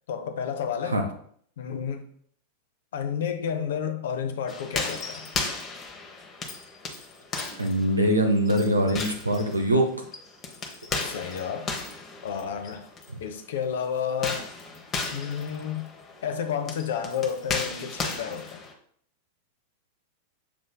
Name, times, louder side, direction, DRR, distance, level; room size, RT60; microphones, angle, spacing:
voice 1, 0.1-1.0 1.6-2.0 2.9-5.3 11.0-11.8 12.2-12.9 13.2-14.5 15.1-15.9 16.2-18.6, left 7 dB, 60° left, 0.6 m, -31 dB
sound 1, 4.5-13.1 14.1-18.7, left 4 dB, 25° left, 0.8 m, -35 dB
voice 2, 7.6-9.9 13.1-13.2, right 1 dB, 80° right, 0.5 m, -23 dB
6.9 x 3.1 x 2.2 m
figure-of-eight pair, 90°, 0 cm